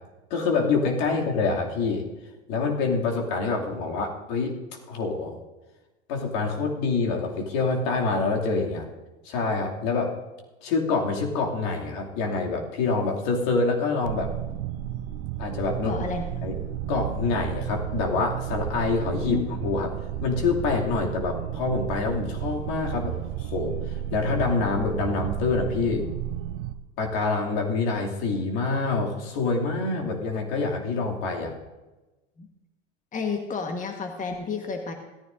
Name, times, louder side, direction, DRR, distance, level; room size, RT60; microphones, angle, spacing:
voice 1, 0.3-2.0 2.5-4.6 4.9-5.4 6.1-8.8 9.2-10.1 10.6-14.3 15.4-15.9 16.4-16.6 16.9-19.9 20.2-26.1 27.0-31.5, left 4 dB, 60° left, 0 dB, 2.6 m, -26 dB
sound 1, 14.1-26.7, right 12 dB, 55° right, 0.7 m, -33 dB
voice 2, 15.8-16.2 19.2-19.4 32.4-32.5 33.1-34.9, left 5 dB, 20° left, 4 dB, 1.4 m, -30 dB
17.0 x 14.0 x 2.6 m, 1.1 s
hypercardioid pair, 80°, 35 cm